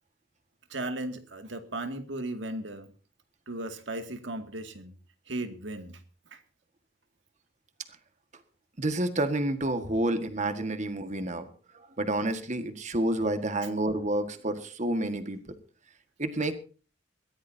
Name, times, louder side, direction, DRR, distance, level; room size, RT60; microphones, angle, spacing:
voice 1, 0.7-2.9 3.5-4.9 5.3-6.0 6.3-6.4 16.4-16.5, right 2 dB, 70° right, 7 dB, 2.3 m, -36 dB
voice 2, 8.8-11.5 12.0-15.4 16.2-16.5, right 1 dB, 40° right, 9 dB, 1.6 m, -29 dB
22.5 x 15.5 x 2.8 m, 0.37 s
head